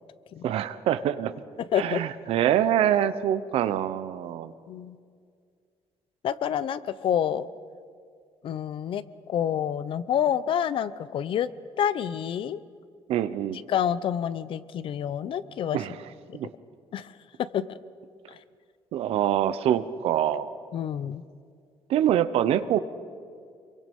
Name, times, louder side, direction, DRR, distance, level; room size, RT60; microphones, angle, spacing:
voice 1, 0.4-1.3 1.7-4.5 13.1-13.6 15.7-15.9 16.3-16.5 18.9-20.5 21.9-22.8, right 10 dB, 80° right, 13 dB, 0.9 m, -25 dB
voice 2, 1.7-2.0 4.7-5.0 6.2-7.5 8.4-11.5 11.8-12.6 13.5-15.8 16.4-16.5 16.9-17.1 17.4-17.8 18.3-18.4 20.7-21.2, left 9 dB, 60° left, 16 dB, 0.8 m, -28 dB
26.0 x 23.0 x 5.4 m, 2.2 s
cardioid pair, 115°, 10 cm